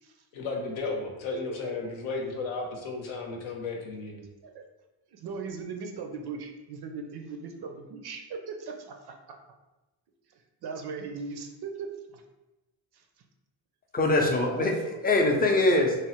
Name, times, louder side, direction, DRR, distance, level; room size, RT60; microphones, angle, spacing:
voice 1, 0.3-4.2, left 3 dB, 75° left, 1 dB, 0.8 m, -34 dB
voice 2, 5.1-9.4 10.6-11.9 12.1-12.2 12.9-13.0 14.3-14.9, right 5 dB, 55° right, 3 dB, 0.5 m, -39 dB
voice 3, 13.9-15.9, left 2 dB, 20° left, 1 dB, 0.4 m, -23 dB
3.1 x 2.0 x 2.9 m, 1.0 s
cardioid pair, 90°, 48 cm